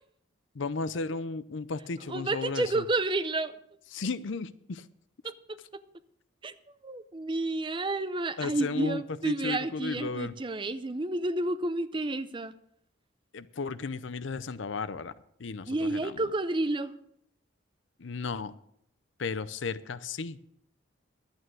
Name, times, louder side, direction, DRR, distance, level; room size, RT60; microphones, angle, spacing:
voice 1, 0.5-2.8 3.9-4.9 8.4-10.3 13.3-15.1 15.4-16.2 18.0-18.5 19.2-20.4, left 4 dB, 70° left, 16 dB, 0.6 m, -34 dB
voice 2, 2.1-3.6 5.2-5.3 6.4-6.5 6.8-12.5 15.7-16.9, right 2 dB, 25° right, 13 dB, 0.5 m, -30 dB
11.0 x 9.1 x 6.2 m, 0.72 s
head